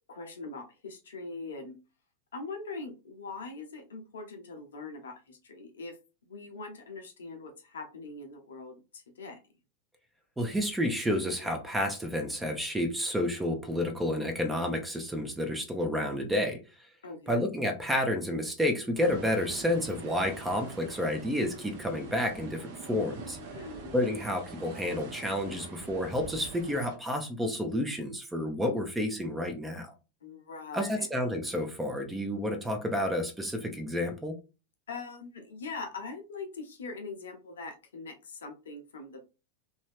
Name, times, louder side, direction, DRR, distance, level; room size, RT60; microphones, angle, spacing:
voice 1, 0.1-1.8 2.3-6.0 6.3-9.4 17.0-17.4 23.5-24.0 30.2-31.1 34.9-39.2, left 3 dB, 65° left, 4 dB, 0.7 m, -42 dB
voice 2, 10.4-16.6 17.3-23.4 23.9-29.9 30.7-34.3, left 1 dB, 5° right, 5 dB, 0.7 m, -30 dB
sound 1, 19.0-27.0, right 3 dB, 50° right, 0.8 m, -45 dB
3.1 x 2.7 x 3.3 m, 0.30 s
figure-of-eight pair, 90°, 0 cm